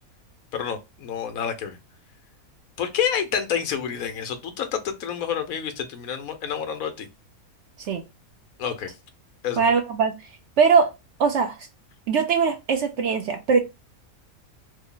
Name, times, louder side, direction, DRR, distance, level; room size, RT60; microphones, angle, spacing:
voice 1, 0.5-1.8 2.8-7.1 8.6-8.9 9.4-9.6, left 8 dB, 75° left, 1.1 m, -28 dB
voice 2, 9.6-10.1 10.6-10.9 11.2-11.6 12.1-13.6, right 5 dB, 65° right, 0.7 m, -21 dB
3.2 x 2.1 x 3.7 m
omnidirectional pair, 1.5 m